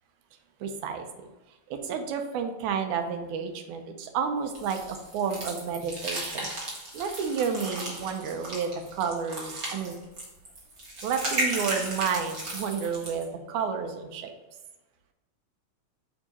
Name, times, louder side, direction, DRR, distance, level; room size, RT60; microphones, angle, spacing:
voice 1, 0.6-1.1 1.7-3.8 4.1-6.5 6.9-10.0 11.0-14.3, right 6 dB, 85° right, 6 dB, 2.1 m, -31 dB
sound 1, 4.5-13.2, right 1 dB, 40° right, 1.5 m, -35 dB
6.5 x 3.6 x 4.1 m, 1.1 s
omnidirectional pair, 3.3 m